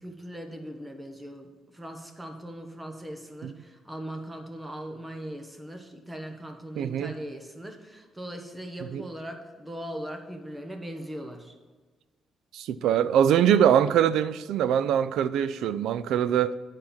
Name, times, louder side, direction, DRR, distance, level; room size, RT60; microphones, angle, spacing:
voice 1, 0.0-11.5, equal, 15° right, 1.2 m, -39 dB
voice 2, 6.8-7.1 8.9-9.0 12.5-16.5, right 9 dB, 80° right, 0.3 m, -23 dB
9.8 x 4.4 x 7.3 m
cardioid pair, 90°, 0 cm